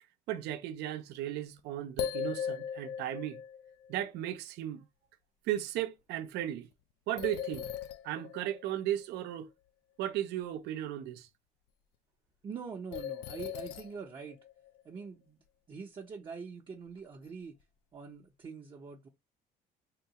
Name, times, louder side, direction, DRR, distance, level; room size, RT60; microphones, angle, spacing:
voice 1, 0.3-3.4 3.9-4.8 5.5-6.7 7.1-7.7 8.0-9.5 10.0-11.3, right 12 dB, 85° right, 0.5 m, -35 dB
sound 1, 1.6-1.7 2.0-3.9 7.2-8.9 12.9-14.8, left 8 dB, 80° left, 0.4 m, -38 dB
voice 2, 12.4-14.4 14.8-15.4 15.7-17.6 17.9-19.1, right 5 dB, 30° right, 0.5 m, -44 dB
3.6 x 2.3 x 2.8 m
cardioid pair, 110°, 17 cm